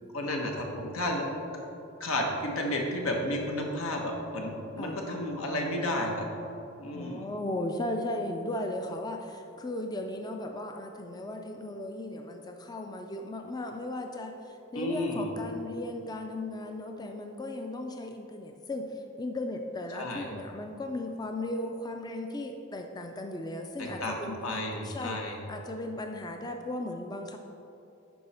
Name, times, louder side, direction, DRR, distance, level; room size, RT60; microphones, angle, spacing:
voice 1, 0.1-1.4 2.0-6.2 6.8-7.3 14.7-15.3 19.9-20.3 23.8-25.4, left 1 dB, 85° left, 1 dB, 1.3 m, -32 dB
voice 2, 6.9-24.4 24.8-25.2 25.5-27.4, left 1 dB, 20° left, 4 dB, 0.4 m, -36 dB
11.0 x 4.8 x 4.3 m, 2.8 s
head